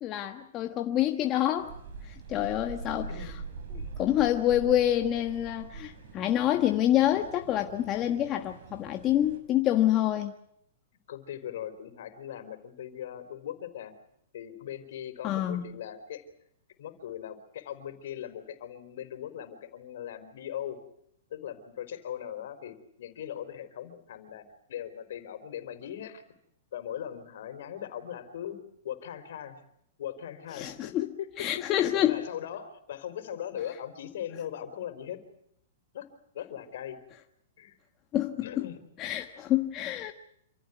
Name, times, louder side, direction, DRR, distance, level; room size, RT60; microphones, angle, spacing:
voice 1, 0.0-1.7 2.1-3.1 4.0-10.3 15.2-15.7 30.6-31.1 31.4-32.2 38.1-38.7 39.0-40.1, left 12 dB, 30° left, 1.4 m, -27 dB
sound 1, 1.6-9.4, right 4 dB, 60° right, 6.0 m, -43 dB
voice 2, 11.1-13.9 14.3-16.2 16.8-20.8 21.3-26.2 26.7-28.6 28.8-29.6 30.0-35.2 35.9-36.1 36.3-37.0 37.6-37.8 38.4-38.8, left 10 dB, 65° left, 4.3 m, -39 dB
27.5 x 15.0 x 9.4 m
hypercardioid pair, 140°, 0 cm